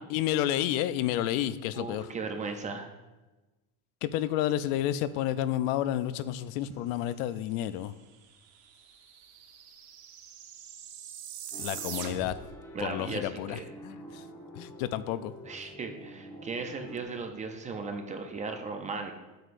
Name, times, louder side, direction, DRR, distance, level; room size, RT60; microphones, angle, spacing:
voice 1, 0.1-2.1 4.0-7.9 11.6-12.4 12.8-14.3 14.5-15.3, left 12 dB, 70° left, 15 dB, 0.5 m, -30 dB
voice 2, 1.7-2.9 12.7-13.7 15.4-19.1, right 4 dB, 20° right, 4 dB, 0.4 m, -36 dB
sound 1, 8.0-8.1 8.3-12.5, right 9 dB, 80° right, 1.2 m, -42 dB
sound 2, 11.5-17.0, equal, 5° left, 0.9 m, -47 dB
8.2 x 7.8 x 2.5 m, 1.1 s
cardioid pair, 150°, 41 cm